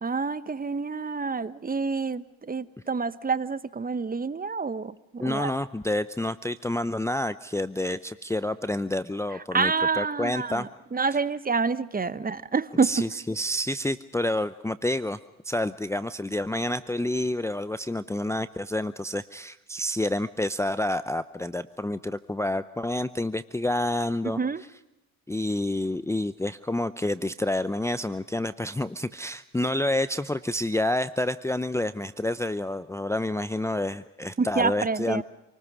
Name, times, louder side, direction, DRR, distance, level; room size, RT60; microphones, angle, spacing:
voice 1, 0.0-5.5 9.5-13.1 24.2-24.6 34.4-35.2, right 4 dB, 20° right, 15 dB, 1.1 m, -28 dB
voice 2, 5.2-9.7 10.0-10.7 12.8-15.2 15.4-24.4 25.3-35.2, left 1 dB, 5° left, 12 dB, 0.7 m, -28 dB
27.5 x 19.5 x 6.2 m, 0.96 s
hypercardioid pair, 65°, 41 cm